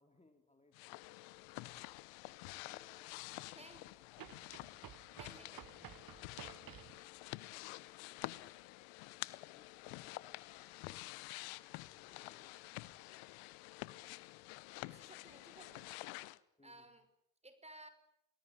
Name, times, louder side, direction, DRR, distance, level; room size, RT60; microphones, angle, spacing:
voice 1, 0.0-2.0 2.6-3.1 3.5-4.0 9.5-11.6 11.9-12.9 16.6-16.9, left 2 dB, 15° left, 5 dB, 3.6 m, -70 dB
sound 1, 0.7-16.4, left 21 dB, 80° left, 1.1 m, -49 dB
sound 2, 1.7-1.8 4.2-7.0, right 11 dB, 45° right, 1.2 m, -54 dB
voice 2, 5.1-5.6 14.9-15.9 16.6-17.0 17.4-17.9, right 1 dB, 15° right, 11 dB, 5.8 m, -57 dB
29.5 x 19.0 x 9.0 m, 0.77 s
hypercardioid pair, 65°, 49 cm